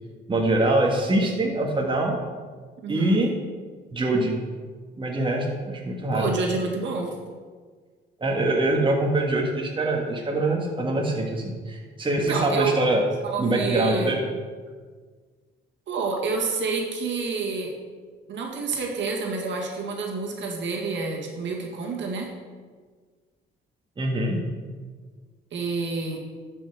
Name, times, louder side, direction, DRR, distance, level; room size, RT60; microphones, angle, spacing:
voice 1, 0.3-2.2 2.9-3.3 3.9-4.4 5.0-6.3 8.2-13.0 13.4-14.2 24.0-24.4, right 2 dB, 25° right, 0 dB, 1.6 m, -24 dB
voice 2, 2.8-3.2 6.1-7.2 12.3-12.7 13.2-14.1 15.9-17.7 18.3-22.3 25.5-26.2, right 4 dB, 70° right, 0 dB, 1.8 m, -28 dB
11.5 x 5.5 x 4.7 m, 1.5 s
cardioid pair, 90°, 20 cm